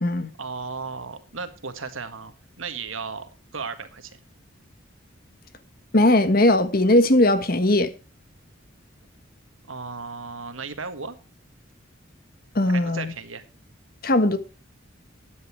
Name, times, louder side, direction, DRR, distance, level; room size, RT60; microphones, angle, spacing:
voice 1, 0.4-4.2 9.7-11.2 12.7-13.4, right 4 dB, 85° right, 1.7 m, -35 dB
voice 2, 5.9-7.9 12.5-13.1 14.0-14.4, left 1 dB, 50° left, 1.3 m, -19 dB
12.5 x 9.6 x 4.6 m
head